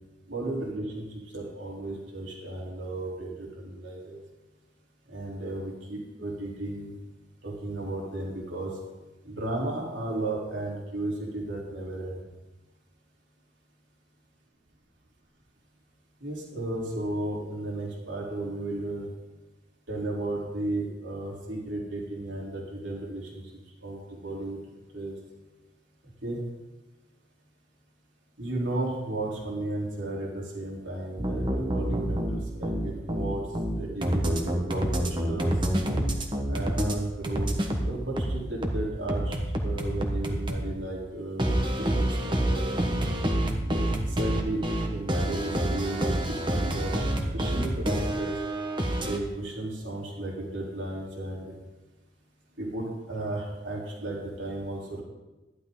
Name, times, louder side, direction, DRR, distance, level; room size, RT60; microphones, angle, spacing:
voice 1, 0.3-1.0 1.3-4.2 5.1-6.9 7.4-8.7 9.2-12.2 16.2-19.1 19.9-23.4 23.8-24.6 24.9-25.2 26.2-26.4 28.4-33.4 33.8-35.5 36.5-37.6 37.8-42.6 43.7-43.8 44.1-44.6 44.9-47.0 47.3-48.3 49.0-51.5 52.6-55.0, right 2 dB, 70° right, -3 dB, 3.6 m, -34 dB
sound 1, 31.2-37.0 37.2-40.7 41.4-49.2, right 1 dB, 25° right, 1.3 m, -28 dB
14.5 x 11.5 x 3.9 m, 1.1 s
head